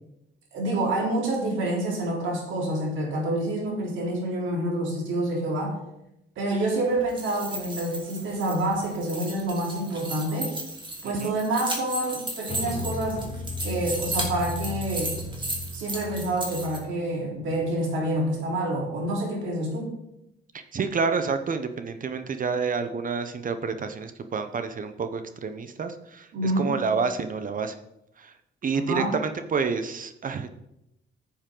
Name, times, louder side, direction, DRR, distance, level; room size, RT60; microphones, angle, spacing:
voice 1, 0.5-5.8 6.4-10.6 11.0-13.3 13.6-15.2 15.7-19.9 26.3-26.7 28.7-29.1, right 1 dB, 75° right, -2 dB, 3.4 m, -27 dB
sound 1, 7.0-16.8, right 2 dB, 25° right, 2.5 m, -35 dB
sound 2, 12.5-18.2, left 2 dB, 30° left, 1.9 m, -36 dB
voice 2, 20.5-27.8 28.2-28.3 28.6-30.5, right 5 dB, 45° right, 9 dB, 0.8 m, -29 dB
9.9 x 7.1 x 3.8 m, 0.84 s
cardioid pair, 90°, 20 cm